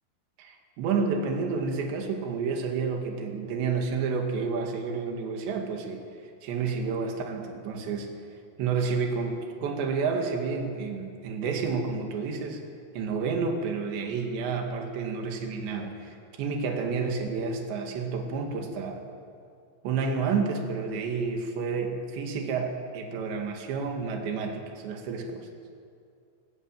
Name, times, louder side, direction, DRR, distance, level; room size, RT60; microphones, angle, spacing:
voice 1, 0.4-6.1 6.4-8.1 8.6-12.7 12.9-19.1 19.8-25.5, right 5 dB, 75° right, 3 dB, 4.3 m, -30 dB
21.0 x 19.5 x 9.1 m, 2.4 s
omnidirectional pair, 5.2 m